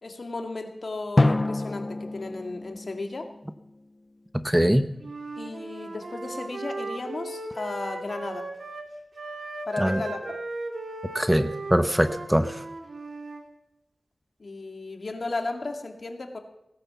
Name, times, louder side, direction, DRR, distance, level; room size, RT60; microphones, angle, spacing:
voice 1, 0.0-3.3 5.4-8.5 9.7-10.2 14.4-16.4, left 3 dB, 65° left, 4 dB, 2.2 m, -34 dB
Drum, 1.2-3.9, left 2 dB, 35° left, 0.5 m, -27 dB
voice 2, 4.4-4.9 9.8-10.0 11.1-12.6, equal, 10° right, 10 dB, 0.8 m, -22 dB
Wind instrument woodwind instrument, 5.0-8.9 9.1-13.5, right 2 dB, 75° right, 2.4 m, -37 dB
18.0 x 10.0 x 7.1 m, 0.86 s
wide cardioid pair, 85°, 0 cm